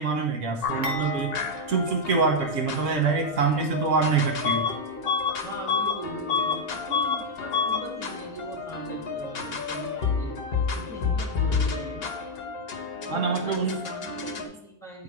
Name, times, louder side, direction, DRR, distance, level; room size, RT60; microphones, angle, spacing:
voice 1, 0.0-1.3 1.7-4.7 13.1-13.8, right 4 dB, 70° right, 3 dB, 1.2 m, -25 dB
sound 1, 0.6-14.5, left 5 dB, 50° left, 1.0 m, -32 dB
sound 2, 0.8-3.0 3.3-3.5 4.4-4.5, right 2 dB, 40° right, 0.9 m, -38 dB
Bus / Alarm, 4.4-4.8 5.1-6.6 6.9-7.2 7.5-7.9, left 5 dB, 85° left, 1.1 m, -26 dB
voice 2, 5.4-10.4 10.7-12.1 13.1-15.0, right 2 dB, ahead, -3 dB, 1.6 m, -40 dB
8.8 x 3.7 x 4.7 m, 0.80 s
omnidirectional pair, 1.4 m